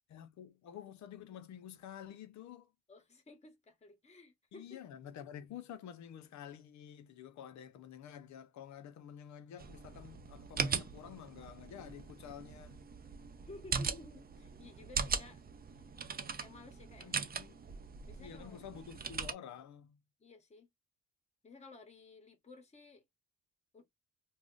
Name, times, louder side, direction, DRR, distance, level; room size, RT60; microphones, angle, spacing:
voice 1, 0.1-2.7 4.5-12.8 17.0-17.6 18.2-20.0, left 9 dB, 70° left, 0.6 m, -50 dB
voice 2, 2.9-4.8 13.5-15.4 15.8-15.9 16.4-17.2 18.1-18.6 20.2-20.7 21.4-23.0 23.7-23.9, left 3 dB, 20° left, 1.0 m, -55 dB
sound 1, 9.6-19.3, right 5 dB, 30° right, 0.6 m, -40 dB
2.4 x 2.1 x 3.7 m
cardioid pair, 90°, 30 cm